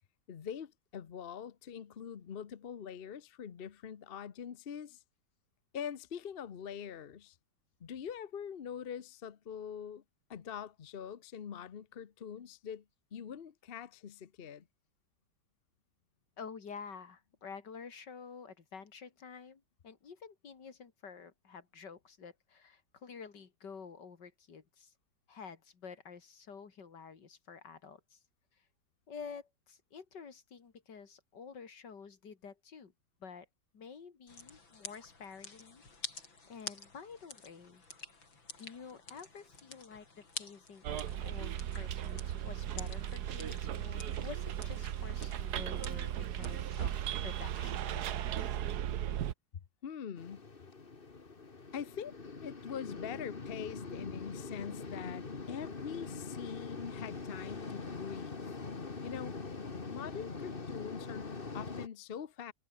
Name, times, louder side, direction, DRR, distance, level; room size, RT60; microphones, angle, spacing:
voice 1, 0.3-5.0 5.7-7.3 7.8-10.0 10.3-12.8 13.1-14.7 49.8-50.5 51.7-58.4 59.0-59.4 59.9-62.5, left 8 dB, 45° left, 0.7 m, -43 dB
voice 2, 16.4-24.9 25.3-28.2 29.1-32.9 33.2-33.5 33.7-35.8 36.2-37.8 38.6-48.8, left 6 dB, 65° left, 2.8 m, -50 dB
sound 1, 34.3-46.9, left 4 dB, 85° left, 5.3 m, -50 dB
Bus, 40.8-49.3, right 11 dB, 60° right, 1.4 m, -36 dB
sound 2, 50.2-61.9, left 4 dB, 30° left, 1.8 m, -43 dB
omnidirectional pair, 2.1 m